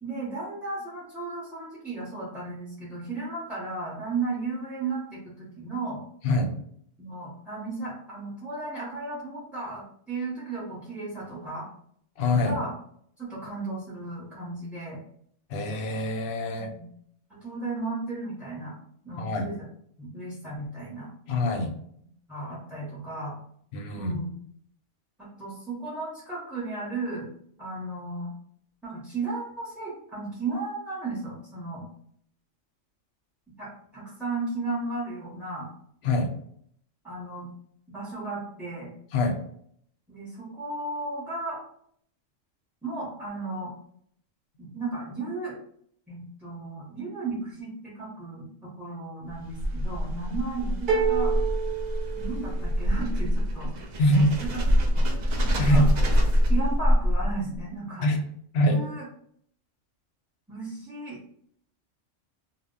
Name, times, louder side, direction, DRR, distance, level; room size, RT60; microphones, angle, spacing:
voice 1, 0.0-6.0 7.0-11.7 12.4-12.7 13.2-15.0 16.5-16.9 17.3-18.7 19.0-19.6 20.0-21.1 22.3-23.4 24.0-24.3 25.2-27.3 27.6-28.3 28.8-31.9 33.6-35.7 37.0-37.5 37.9-38.9 40.1-41.6 42.8-43.7 44.6-45.5 46.1-51.3 52.2-53.7 54.2-54.6 54.9-55.1 55.4-55.9 56.5-58.1 58.7-59.1 60.5-61.2, right 3 dB, ahead, -7 dB, 0.4 m, -35 dB
voice 2, 12.2-12.6 15.5-16.7 19.2-19.5 21.3-21.7 23.7-24.2 36.0-36.3 39.1-39.4 54.0-54.3 55.6-55.9 58.0-58.3 58.5-58.8, left 1 dB, 65° left, 4 dB, 0.7 m, -24 dB
sound 1, 49.3-57.6, equal, 80° right, 0.4 m, -25 dB
sound 2, 50.9-52.9, right 7 dB, 45° right, 0.8 m, -28 dB
2.1 x 2.0 x 3.6 m, 0.66 s
omnidirectional pair, 1.3 m